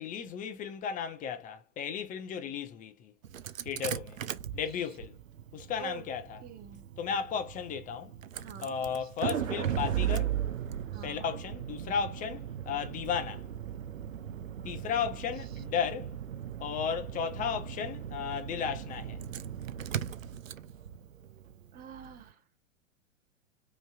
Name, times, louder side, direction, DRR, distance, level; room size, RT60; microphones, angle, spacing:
voice 1, 0.0-3.1 3.6-4.2 4.5-5.2 5.5-6.4 7.0-8.1 8.6-10.3 11.0-13.5 14.6-16.1 16.6-19.2, left 7 dB, 20° left, 0.8 m, -34 dB
Engine starting, 3.2-22.2, right 10 dB, 85° right, 0.5 m, -37 dB
voice 2, 6.4-6.8 8.4-8.7 10.9-11.4 14.2-14.9 21.7-22.3, right 9 dB, 20° right, 1.0 m, -47 dB
5.3 x 3.2 x 2.4 m
figure-of-eight pair, 105°, 38 cm